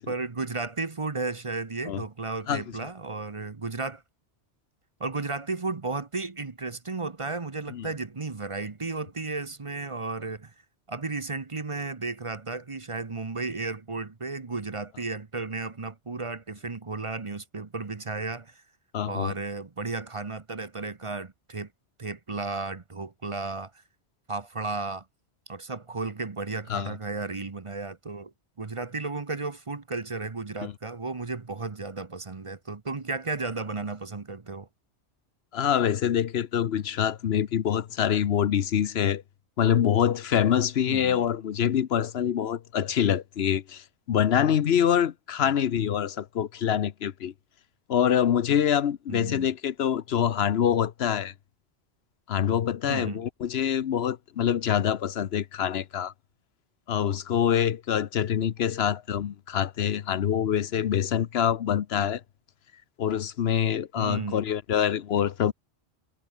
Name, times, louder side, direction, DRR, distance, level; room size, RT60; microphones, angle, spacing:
voice 1, 0.1-4.0 5.0-10.5 10.9-18.6 19.0-21.7 22.0-23.7 24.3-25.0 25.5-28.3 28.6-34.7 40.9-41.2 49.1-49.5 52.9-53.2 64.0-64.5, right 3 dB, 30° right, 0.9 m, -34 dB
voice 2, 18.9-19.3 26.7-26.9 30.6-30.7 35.5-39.2 39.6-47.3 47.9-51.3 52.3-56.1 56.9-62.2 63.0-65.5, left 9 dB, 70° left, 1.0 m, -25 dB
omnidirectional pair, 1.1 m